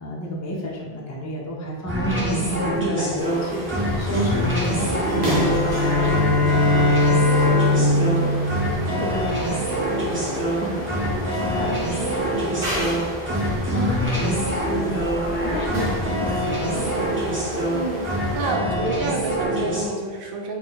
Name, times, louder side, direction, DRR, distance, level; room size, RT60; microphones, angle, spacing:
voice 1, 0.0-8.4 8.7-15.1 15.4-17.4, equal, 25° left, -3 dB, 0.4 m, -32 dB
sound 1, 1.9-19.9, equal, 10° right, 0.9 m, -25 dB
sound 2, 3.2-18.5, equal, 45° right, 1.0 m, -32 dB
sound 3, 5.0-9.5, left 2 dB, 75° left, 0.8 m, -21 dB
voice 2, 17.7-20.6, right 3 dB, 65° right, 0 dB, 0.8 m, -28 dB
4.0 x 2.3 x 3.9 m, 1.5 s
omnidirectional pair, 1.1 m